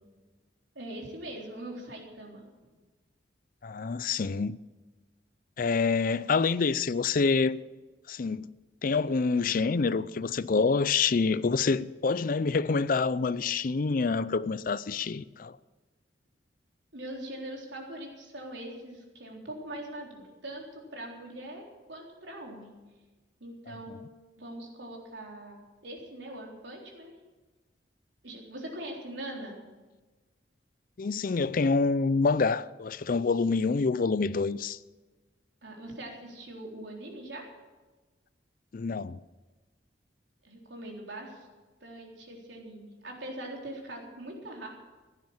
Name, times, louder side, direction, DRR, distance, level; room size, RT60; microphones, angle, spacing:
voice 1, 0.8-2.4 16.9-22.7 23.4-23.9 24.4-27.2 28.2-29.6 35.6-37.5 40.4-41.5 41.8-44.7, right 1 dB, 80° right, 3.8 m, -42 dB
voice 2, 3.6-4.6 5.6-7.6 8.1-8.5 8.8-15.6 23.7-24.0 31.0-34.8 38.7-39.2, left 4 dB, 50° left, 0.5 m, -27 dB
15.5 x 10.5 x 7.4 m
head